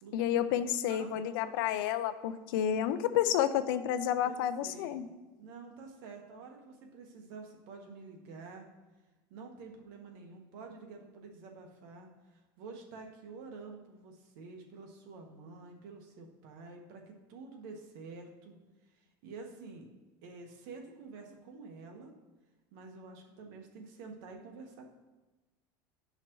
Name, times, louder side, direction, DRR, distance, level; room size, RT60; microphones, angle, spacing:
voice 1, 0.1-5.1, left 10 dB, 75° left, 11 dB, 0.5 m, -30 dB
voice 2, 4.2-5.1 5.4-8.7 9.3-18.6 19.0-19.8 20.2-22.1 22.7-24.9, right 4 dB, 70° right, 2 dB, 1.3 m, -49 dB
11.0 x 5.7 x 3.0 m, 1.1 s
supercardioid pair, 145°, 11 cm